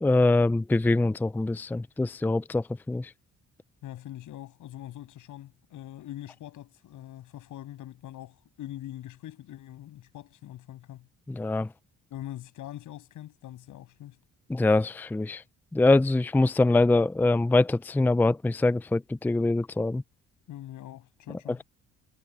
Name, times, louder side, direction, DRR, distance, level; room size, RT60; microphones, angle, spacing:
voice 1, 0.0-3.1 11.3-11.7 14.5-15.4 15.7-20.0, left 2 dB, 5° left, 0.4 m, -24 dB
voice 2, 3.8-11.1 12.1-14.2 20.5-21.6, left 13 dB, 80° left, 7.7 m, -43 dB
cardioid pair, 90°, 30 cm